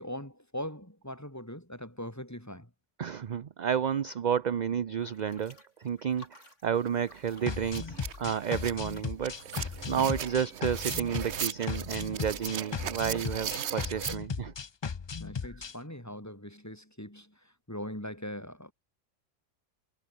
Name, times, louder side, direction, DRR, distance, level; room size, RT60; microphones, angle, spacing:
voice 1, 0.0-2.7 9.9-10.1 15.2-18.7, equal, 10° left, 4.5 m, -41 dB
voice 2, 3.0-9.4 9.9-14.5, right 8 dB, 45° right, 0.6 m, -31 dB
sound 1, 5.0-10.0, left 1 dB, 70° left, 7.6 m, -56 dB
sound 2, 6.9-7.0 7.3-14.2, right 9 dB, 65° right, 1.1 m, -38 dB
sound 3, 7.5-15.7, left 5 dB, 40° left, 0.3 m, -37 dB
omnidirectional pair, 1.3 m